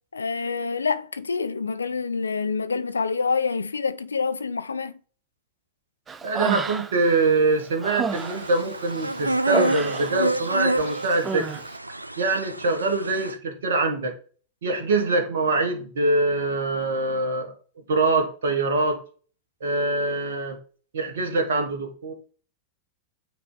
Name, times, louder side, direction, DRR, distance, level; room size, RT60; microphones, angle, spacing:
voice 1, 0.1-5.0, left 5 dB, 75° left, 0.4 m, -27 dB
Human voice, 6.1-7.1 7.5-10.5 10.8-11.6, right 6 dB, 20° right, 0.5 m, -31 dB
voice 2, 6.2-11.5 12.2-14.1 14.6-17.5 17.9-19.0 19.6-20.6 20.9-22.1, right 3 dB, 60° right, 1.3 m, -24 dB
sound 1, 8.1-13.3, right 2 dB, 85° right, 0.4 m, -28 dB
9.1 x 3.4 x 3.9 m
figure-of-eight pair, 90°, 0 cm